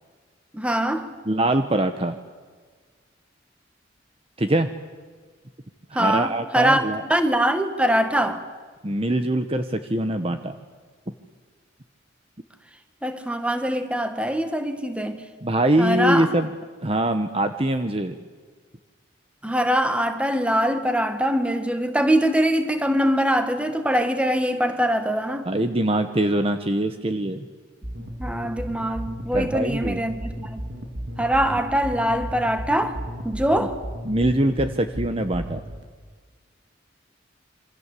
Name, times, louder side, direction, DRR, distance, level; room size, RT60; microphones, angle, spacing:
voice 1, 0.5-1.1 5.9-8.4 13.0-15.2 15.8-16.3 19.4-25.5 28.0-30.6 31.2-33.0 33.2-33.8, equal, 5° right, 1.9 m, -23 dB
voice 2, 1.3-2.2 4.4-4.7 5.9-7.0 8.8-10.6 15.4-16.5 16.8-18.2 25.5-27.5 29.3-30.0 33.6-33.7 34.0-35.6, right 1 dB, 30° right, 1.2 m, -23 dB
sound 1, 27.8-35.8, right 1 dB, 70° right, 4.1 m, -34 dB
27.5 x 25.0 x 8.5 m
head